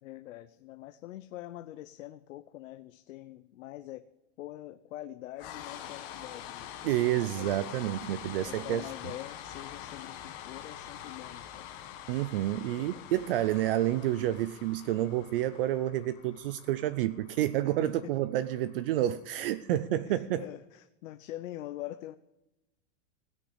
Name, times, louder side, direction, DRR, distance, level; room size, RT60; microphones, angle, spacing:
voice 1, 0.0-4.1 4.4-6.7 7.0-7.5 8.4-11.7 12.7-13.1 17.6-17.7 18.0-18.1 19.7-22.2, left 14 dB, 85° left, 11 dB, 0.7 m, -44 dB
sound 1, 5.4-19.5, left 10 dB, 30° left, 1.2 m, -45 dB
voice 2, 6.8-8.9 12.1-20.4, right 13 dB, 50° right, 13 dB, 0.5 m, -29 dB
16.5 x 6.6 x 9.7 m, 0.96 s
supercardioid pair, 175°, 38 cm